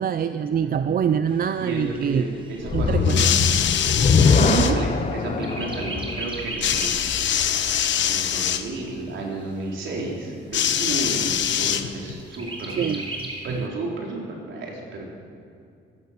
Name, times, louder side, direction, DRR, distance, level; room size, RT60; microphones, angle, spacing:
voice 1, 0.0-2.3 2.7-3.3 4.4-4.8 12.8-13.0, right 8 dB, 45° right, 11 dB, 0.5 m, -24 dB
voice 2, 0.6-1.0 1.6-3.6 4.0-7.3 8.0-13.0 13.4-15.0, right 2 dB, 70° right, -1 dB, 4.3 m, -32 dB
Chirp tweet, 1.3-5.0 5.4-7.1 7.5-7.6 8.0-9.0 9.6-9.7 10.0-10.1 10.6-11.1 12.3-13.4, right 2 dB, 25° right, 3.7 m, -36 dB
sound 1, 2.6-7.9, left 5 dB, 35° left, 0.9 m, -22 dB
sound 2, 3.0-4.7 6.6-8.6 10.5-12.2 13.2-13.3, left 9 dB, 65° left, 1.0 m, -23 dB
16.5 x 13.0 x 6.8 m, 2.4 s
cardioid pair, 90°, 20 cm